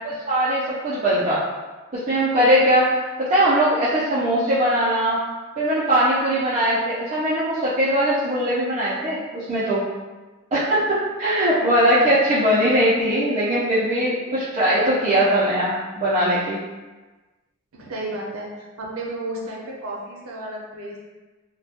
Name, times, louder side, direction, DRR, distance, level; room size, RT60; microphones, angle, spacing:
voice 1, 0.0-1.4 1.9-5.2 5.6-9.8 10.5-16.6, right 1 dB, 35° right, -11 dB, 0.4 m, -20 dB
voice 2, 17.7-18.5 18.8-21.0, right 1 dB, 80° right, -2 dB, 0.6 m, -32 dB
2.2 x 2.1 x 2.7 m, 1.2 s
head